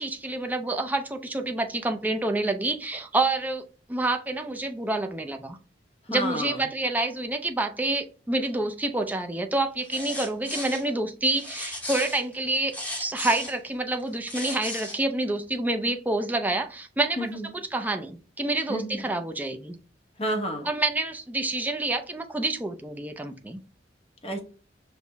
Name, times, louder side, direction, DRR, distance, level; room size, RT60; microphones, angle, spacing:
voice 1, 0.0-3.6 3.9-5.6 6.1-17.3 17.5-19.8 20.6-23.6, right 2 dB, 10° right, 0.4 m, -28 dB
voice 2, 6.1-6.6 17.2-17.5 18.7-19.1 20.2-20.7 24.2-24.4, equal, 35° left, 0.9 m, -30 dB
sound 1, 9.8-10.8 11.4-13.6 14.1-15.0, left 1 dB, 10° left, 1.0 m, -35 dB
5.5 x 2.0 x 3.3 m
head